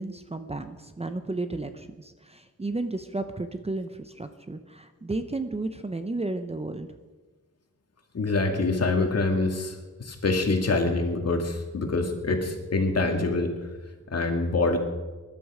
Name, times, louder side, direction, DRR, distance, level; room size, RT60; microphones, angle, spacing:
voice 1, 0.0-6.9, right 2 dB, 20° right, 8 dB, 0.7 m, -33 dB
voice 2, 8.1-13.7 14.1-14.8, left 3 dB, 50° left, 4 dB, 2.1 m, -25 dB
20.0 x 11.5 x 4.9 m, 1.3 s
wide cardioid pair, 145°, 31 cm